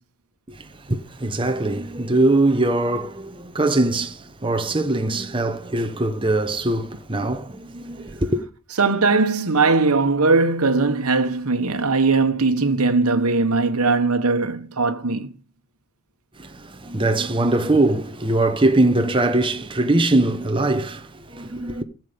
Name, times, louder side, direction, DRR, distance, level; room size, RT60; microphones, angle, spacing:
voice 1, 0.5-8.4 16.4-21.8, right 2 dB, 25° right, 1.0 m, -22 dB
voice 2, 8.8-15.3, right 3 dB, 75° right, 1.2 m, -19 dB
15.0 x 7.5 x 5.2 m
head